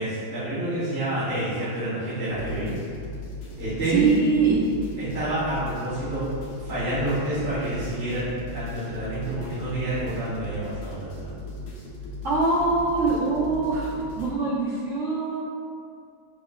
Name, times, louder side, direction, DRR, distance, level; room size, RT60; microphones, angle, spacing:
voice 1, 0.0-2.7 3.5-4.1 5.0-6.3 6.6-11.3, right 1 dB, 35° right, -15 dB, 1.6 m, -28 dB
sound 1, 2.3-14.3, left 2 dB, 70° left, 1.3 m, -38 dB
voice 2, 3.9-4.7 12.2-13.9 14.2-15.4, right 4 dB, 75° right, -8 dB, 0.7 m, -23 dB
6.5 x 2.9 x 2.4 m, 2.3 s
omnidirectional pair, 2.2 m